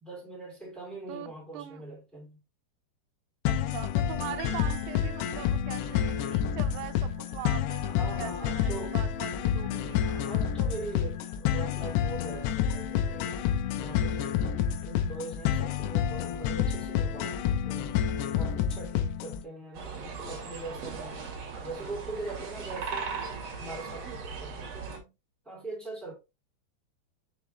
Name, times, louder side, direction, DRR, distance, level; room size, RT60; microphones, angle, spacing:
voice 1, 0.0-2.4 7.9-9.0 10.0-13.4 13.7-18.0 18.3-21.3 21.6-23.3 23.6-25.1 25.4-26.1, right 2 dB, ahead, 1.7 m, -42 dB
voice 2, 1.1-1.8 3.5-10.0, right 11 dB, 80° right, 2.6 m, -41 dB
sound 1, 3.5-19.4, left 9 dB, 85° left, 2.8 m, -29 dB
sound 2, 4.4-18.8, left 1 dB, 50° left, 2.1 m, -53 dB
sound 3, 19.7-25.0, right 5 dB, 50° right, 2.2 m, -38 dB
6.7 x 4.7 x 3.1 m
omnidirectional pair, 5.0 m